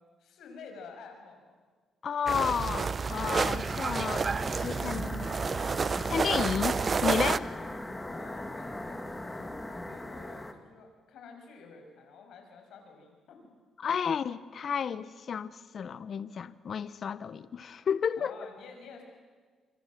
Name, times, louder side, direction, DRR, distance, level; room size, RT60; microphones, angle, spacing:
voice 1, 0.2-1.6 8.0-13.4 18.2-19.0, left 5 dB, 75° left, 6.3 m, -50 dB
voice 2, 2.0-5.3 6.1-7.5 13.8-18.3, left 7 dB, 55° left, 0.9 m, -32 dB
sound 1, 2.3-7.4, right 5 dB, 40° right, 0.7 m, -30 dB
sound 2, 3.1-10.5, left 1 dB, 15° left, 2.3 m, -39 dB
26.5 x 24.5 x 7.5 m
cardioid pair, 90°, 0 cm